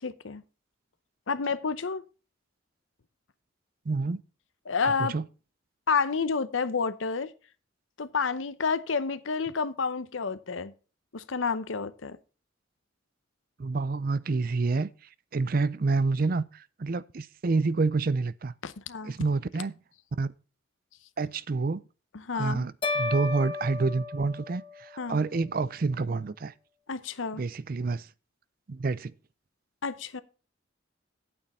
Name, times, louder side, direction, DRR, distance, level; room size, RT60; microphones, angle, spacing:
voice 1, 0.0-0.4 1.3-2.0 4.7-5.1 5.9-7.3 8.0-10.7 11.1-12.2 18.6-19.1 22.1-22.7 25.0-25.2 26.9-27.4 29.8-30.2, left 5 dB, 80° left, 0.8 m, -29 dB
voice 2, 3.9-4.2 4.8-5.2 13.6-14.9 15.3-18.5 19.0-19.7 20.1-20.3 21.2-21.8 22.3-26.5 27.3-28.1 28.7-29.1, right 3 dB, 45° right, 0.5 m, -28 dB
sound 1, 22.8-25.1, left 3 dB, 25° left, 1.1 m, -33 dB
9.2 x 8.7 x 4.2 m
head